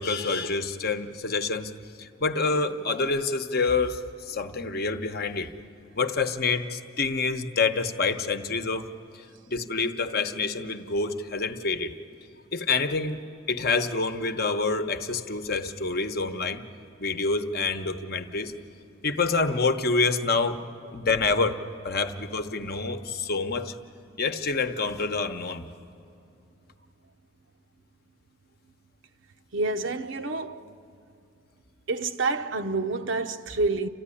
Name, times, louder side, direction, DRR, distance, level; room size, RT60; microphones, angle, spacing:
voice 1, 0.0-1.7 2.0-5.5 6.0-8.9 9.5-11.9 12.5-13.2 13.5-16.6 17.0-18.5 19.0-20.6 20.9-21.6 21.8-23.7 24.2-25.7, left 4 dB, 45° left, 0.9 m, -27 dB
voice 2, 29.5-30.7 31.9-33.9, right 3 dB, 60° right, 0.8 m, -28 dB
28.5 x 14.5 x 9.9 m
head